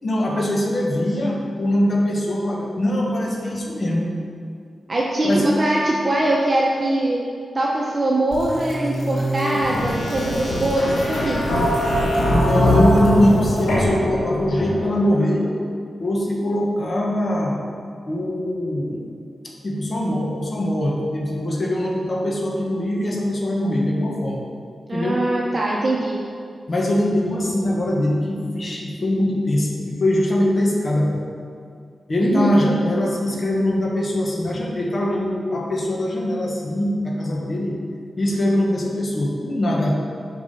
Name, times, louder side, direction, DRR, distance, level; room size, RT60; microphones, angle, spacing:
voice 1, 0.0-4.1 5.2-5.5 12.3-15.5 16.0-17.6 18.1-19.0 19.6-24.4 24.9-25.2 26.7-31.2 32.1-37.8 38.2-40.0, left 1 dB, 50° left, -1 dB, 1.4 m, -22 dB
voice 2, 4.9-7.2 7.5-11.4 24.9-26.2 32.2-32.5, right 1 dB, 40° right, -4 dB, 1.0 m, -22 dB
sound 1, 8.3-15.0, left 1 dB, 90° left, 1.9 m, -22 dB
5.8 x 5.3 x 5.6 m, 2.3 s
cardioid pair, 55°, 0 cm